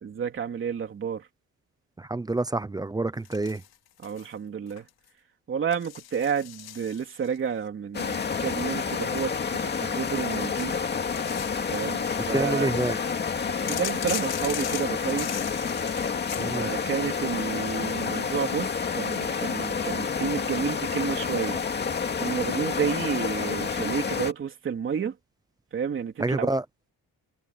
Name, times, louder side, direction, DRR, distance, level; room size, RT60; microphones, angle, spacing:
voice 1, 0.0-1.3 4.0-4.9 5.5-10.8 11.7-12.7 13.4-15.5 16.5-21.6 22.2-25.2 25.7-26.5, right 7 dB, 35° right, 3.1 m, -31 dB
voice 2, 2.0-3.6 12.3-13.0 16.4-16.7 26.2-26.6, right 2 dB, 10° right, 0.6 m, -27 dB
sound 1, 3.3-4.3 4.7-5.1 5.7-7.4 8.0-9.7 10.2-12.3 13.7-16.5, left 13 dB, 85° left, 3.6 m, -39 dB
sound 2, 7.9-24.3, left 5 dB, 30° left, 2.3 m, -29 dB
cardioid pair, 170°, 36 cm